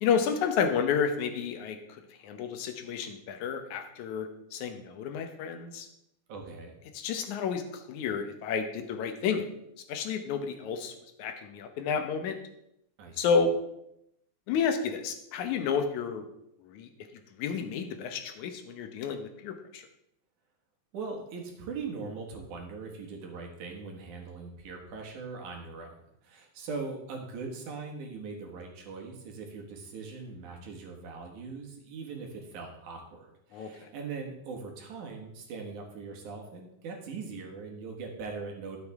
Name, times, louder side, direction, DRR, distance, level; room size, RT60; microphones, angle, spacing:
voice 1, 0.0-5.9 6.9-9.5 9.9-10.9 11.2-12.4 13.2-13.5 14.5-16.3 16.6-16.9 17.4-19.8 33.5-33.9, left 6 dB, 80° left, 6 dB, 2.4 m, -31 dB
voice 2, 6.3-6.7 13.0-13.3 20.9-25.9 26.2-38.8, right 4 dB, 90° right, 1 dB, 3.2 m, -40 dB
12.5 x 7.6 x 3.6 m, 0.80 s
omnidirectional pair, 3.4 m